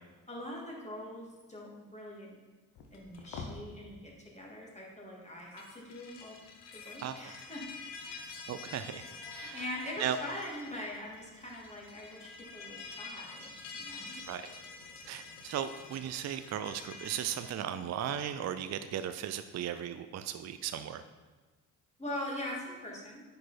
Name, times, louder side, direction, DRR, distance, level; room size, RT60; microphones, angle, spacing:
voice 1, 0.3-2.3 2.9-6.4 6.7-7.7 8.1-8.3 9.5-14.2 22.0-23.2, left 1 dB, 15° left, -3 dB, 2.8 m, -42 dB
sound 1, 2.8-3.6 5.4-17.5, left 4 dB, 60° left, 1.2 m, -47 dB
voice 2, 8.5-9.7 10.0-10.2 14.3-14.5 15.1-21.0, right 10 dB, 35° right, 11 dB, 0.5 m, -36 dB
10.0 x 4.8 x 4.4 m, 1.3 s
figure-of-eight pair, 40°, 46 cm